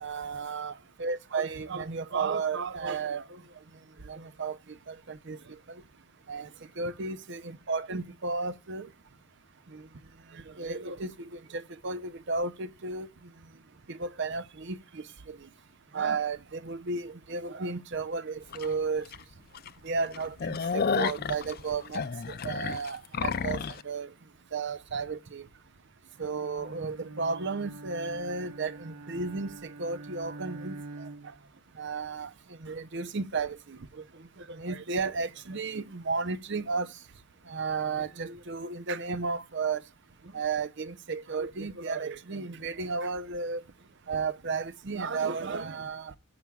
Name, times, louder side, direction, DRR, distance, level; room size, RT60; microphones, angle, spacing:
voice 1, 0.0-0.7 1.0-3.4 4.1-4.6 4.9-5.4 6.3-6.5 6.8-8.9 9.7-9.8 10.3-13.1 13.9-15.4 15.9-19.1 19.8-24.1 24.5-25.4 26.2-30.7 31.8-32.3 32.6-33.8 34.4-36.9 37.5-39.8 40.3-43.6 44.1-46.1, right 4 dB, 55° right, 0.7 m, -33 dB
sound 1, 18.5-18.7 19.1-19.2 19.5-19.7 20.0-23.8, left 5 dB, 45° left, 0.5 m, -31 dB
Bowed string instrument, 26.2-31.5, right 2 dB, 85° right, 0.9 m, -45 dB
19.0 x 8.7 x 2.3 m
head